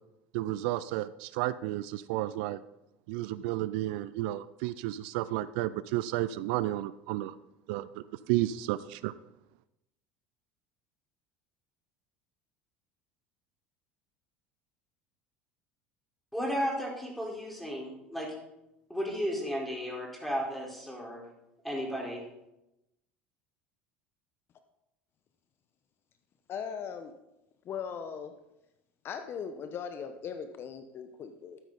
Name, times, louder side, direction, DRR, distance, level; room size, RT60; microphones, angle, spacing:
voice 1, 0.3-2.6 3.1-7.3 7.7-7.9 8.3-9.1, right 15 dB, 65° right, 16 dB, 0.4 m, -32 dB
voice 2, 16.3-18.3 18.9-21.2 21.6-22.2, equal, ahead, -2 dB, 4.2 m, -34 dB
voice 3, 26.5-27.1 27.6-28.3 29.0-31.6, left 7 dB, 45° left, 8 dB, 1.0 m, -39 dB
12.5 x 9.4 x 4.0 m, 0.91 s
hypercardioid pair, 75°, 6 cm